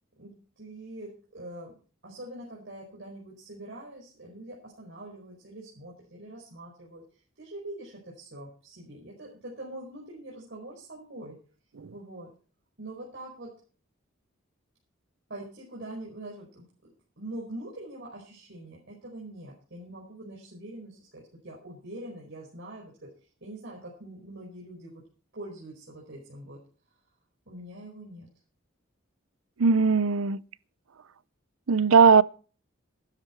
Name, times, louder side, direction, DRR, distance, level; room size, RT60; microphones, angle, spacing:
voice 1, 0.2-1.7 2.0-7.0 7.4-11.3 11.9-12.3 12.8-13.5 15.3-16.6 17.2-23.1 23.4-25.0 25.3-26.6 27.4-28.3, right 1 dB, 60° right, 5.1 m, -43 dB
voice 2, 29.6-30.4 31.7-32.2, right 5 dB, 85° right, 0.6 m, -18 dB
15.0 x 12.5 x 4.6 m
head